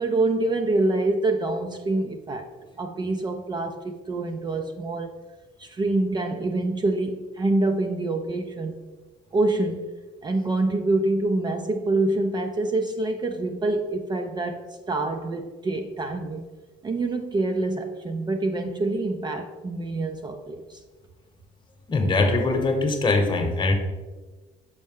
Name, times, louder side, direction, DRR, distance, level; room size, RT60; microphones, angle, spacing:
voice 1, 0.0-2.5 2.8-5.1 5.6-8.8 9.3-9.8 10.2-16.4 16.8-20.8, right 2 dB, 25° right, 5 dB, 0.4 m, -26 dB
voice 2, 21.9-23.7, left 3 dB, 30° left, 4 dB, 1.0 m, -22 dB
6.4 x 4.3 x 3.6 m, 1.3 s
cardioid pair, 110°, 17 cm